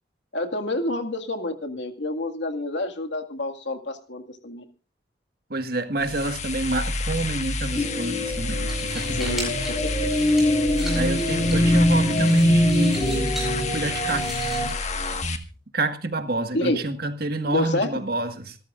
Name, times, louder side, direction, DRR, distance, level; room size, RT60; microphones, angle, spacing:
voice 1, 0.3-4.6 9.1-10.3 11.4-11.5 16.5-16.8 17.4-17.9, left 2 dB, 75° left, 5 dB, 2.1 m, -28 dB
voice 2, 5.5-9.5 10.9-13.3 13.7-14.3 15.7-18.6, right 2 dB, 55° right, 8 dB, 1.7 m, -28 dB
sound 1, 6.0-15.4, left 3 dB, 40° left, 1.6 m, -29 dB
sound 2, 7.7-14.7, equal, 20° left, 7.2 m, -23 dB
sound 3, 8.5-15.5, right 1 dB, ahead, 8.0 m, -39 dB
26.5 x 13.0 x 2.5 m, 0.33 s
head